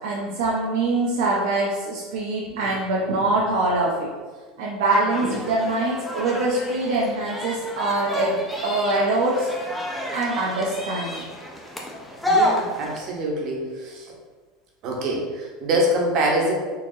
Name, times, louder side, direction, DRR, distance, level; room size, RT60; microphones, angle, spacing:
voice 1, 0.0-4.1 4.6-9.5 9.8-9.9 10.1-11.2, right 2 dB, 80° right, -4 dB, 0.6 m, -24 dB
sound 1, 5.1-13.0, equal, 5° left, 0.4 m, -30 dB
voice 2, 12.3-14.1 14.8-16.5, right 1 dB, 40° right, -1 dB, 0.8 m, -24 dB
3.9 x 2.8 x 2.6 m, 1.4 s
supercardioid pair, 165°, 0 cm